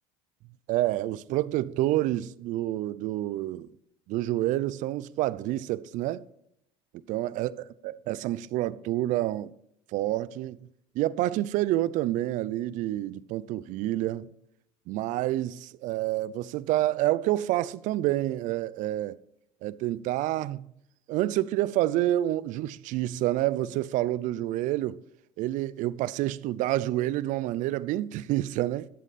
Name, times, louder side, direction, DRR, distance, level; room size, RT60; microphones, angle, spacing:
voice 1, 0.7-3.7 4.1-6.2 7.1-9.5 9.9-10.6 10.9-14.3 14.9-19.2 19.6-20.6 21.1-25.0 25.4-28.9, right 15 dB, 60° right, 0.5 m, -28 dB
12.5 x 8.3 x 4.2 m
supercardioid pair, 100°, 15 cm